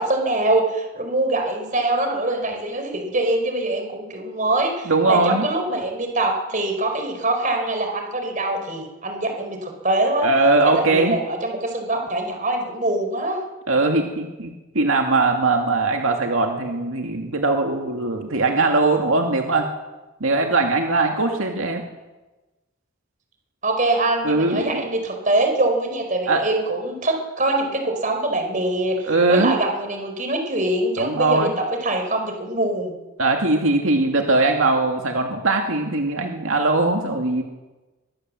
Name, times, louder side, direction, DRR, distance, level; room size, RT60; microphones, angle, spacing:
voice 1, 0.0-10.3 10.8-13.4 23.6-32.9, right 2 dB, 35° right, 4 dB, 4.7 m, -23 dB
voice 2, 4.9-5.5 10.2-11.2 13.7-14.5 14.7-19.7 20.2-21.8 24.2-24.8 26.3-26.4 29.0-29.6 31.0-31.5 33.2-37.4, right 3 dB, 75° right, 3 dB, 2.3 m, -20 dB
23.5 x 20.5 x 7.7 m, 1.1 s
head